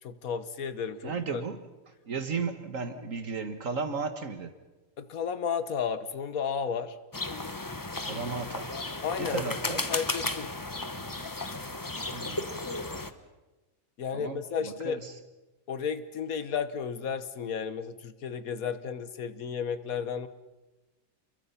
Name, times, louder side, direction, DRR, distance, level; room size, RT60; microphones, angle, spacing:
voice 1, 0.0-1.4 5.0-7.0 9.0-10.5 14.0-15.0 15.7-20.3, left 6 dB, 80° left, 12 dB, 1.6 m, -33 dB
voice 2, 1.0-1.6 2.1-4.5 8.1-8.7 9.2-9.9 12.1-12.5 14.1-15.2, right 5 dB, 65° right, 8 dB, 1.8 m, -34 dB
sound 1, 7.1-13.1, left 2 dB, 15° left, 0.9 m, -34 dB
29.0 x 23.0 x 5.7 m, 1.1 s
omnidirectional pair, 1.5 m